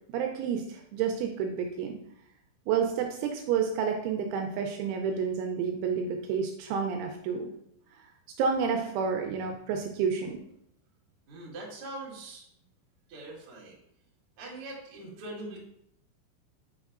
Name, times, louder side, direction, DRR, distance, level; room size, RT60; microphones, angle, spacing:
voice 1, 0.1-2.0 2.7-7.5 8.4-10.4, right 6 dB, 80° right, 3 dB, 2.8 m, -30 dB
voice 2, 11.3-12.4 13.1-13.8 14.4-15.6, right 2 dB, 60° right, -5 dB, 1.5 m, -42 dB
8.2 x 6.2 x 2.5 m, 0.72 s
omnidirectional pair, 5.8 m